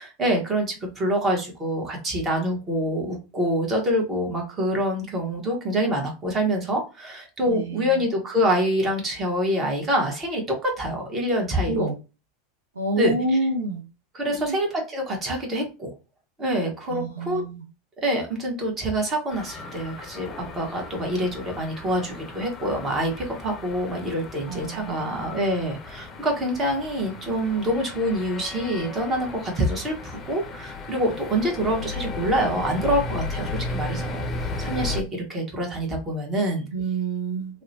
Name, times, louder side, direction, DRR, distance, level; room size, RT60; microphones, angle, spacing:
voice 1, 0.0-11.9 13.0-13.1 14.1-16.0 16.4-17.4 18.0-36.7, equal, 30° right, 1 dB, 1.2 m, -26 dB
voice 2, 7.4-8.0 11.7-12.0 12.8-13.8 14.3-14.6 16.9-17.6 24.5-25.3 36.7-37.6, right 3 dB, 85° right, 3 dB, 0.4 m, -28 dB
sound 1, 19.3-35.0, left 3 dB, 30° left, 0.5 m, -35 dB
2.8 x 2.1 x 2.7 m, 0.30 s
figure-of-eight pair, 85°, 0 cm